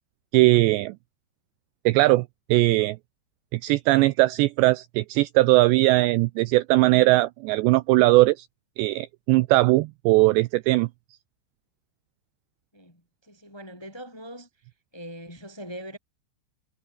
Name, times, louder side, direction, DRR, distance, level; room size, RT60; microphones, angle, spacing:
voice 1, 0.3-0.9 1.9-3.0 3.5-8.5 8.8-10.9, right 20 dB, 90° right, 2.5 m, -20 dB
voice 2, 12.7-14.5 14.9-16.0, equal, 5° left, 5.6 m, -41 dB
omnidirectional pair, 5.6 m